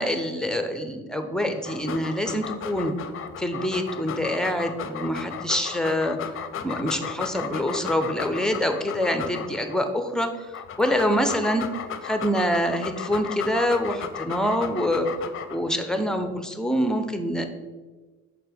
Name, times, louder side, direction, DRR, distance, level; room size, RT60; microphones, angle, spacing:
voice 1, 0.0-3.0 3.4-6.2 6.6-11.6 12.0-15.1 15.5-17.4, equal, ahead, 6 dB, 0.6 m, -25 dB
Dog, 1.5-9.8 10.3-15.7, left 8 dB, 45° left, 0.5 m, -35 dB
6.6 x 4.2 x 3.5 m, 1.3 s
cardioid pair, 90°, 30 cm